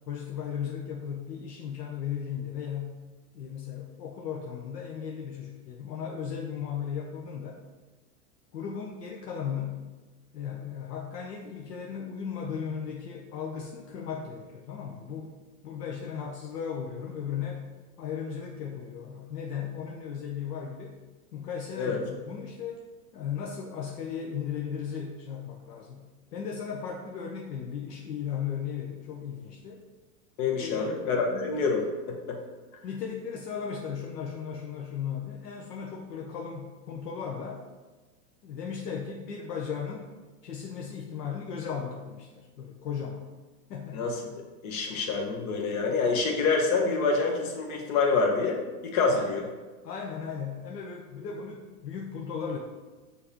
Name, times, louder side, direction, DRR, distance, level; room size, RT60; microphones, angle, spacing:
voice 1, 0.1-3.0 3.3-7.6 8.5-9.8 10.3-15.3 15.6-17.7 18.0-21.0 21.3-22.9 23.1-29.8 30.6-31.4 32.8-37.6 38.4-40.1 40.4-43.3 43.7-44.1 44.9-45.0 49.1-49.3 49.8-52.6, left 7 dB, 80° left, 0 dB, 0.7 m, -36 dB
voice 2, 30.4-32.4 43.9-49.4, left 4 dB, 60° left, 1 dB, 1.1 m, -27 dB
6.3 x 2.7 x 2.9 m, 1.3 s
hypercardioid pair, 115°, 48 cm